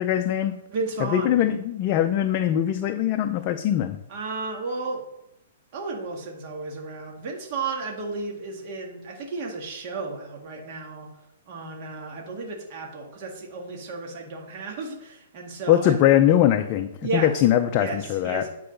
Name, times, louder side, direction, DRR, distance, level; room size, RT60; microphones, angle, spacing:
voice 1, 0.0-0.6 1.1-4.0 15.7-18.4, left 11 dB, 35° left, 6 dB, 0.5 m, -21 dB
voice 2, 0.7-1.4 4.1-5.0 5.7-11.1 11.5-16.0 17.0-17.4 17.7-18.5, right 3 dB, 40° right, 0 dB, 1.7 m, -33 dB
9.2 x 4.8 x 5.2 m, 0.86 s
hypercardioid pair, 155°, 0 cm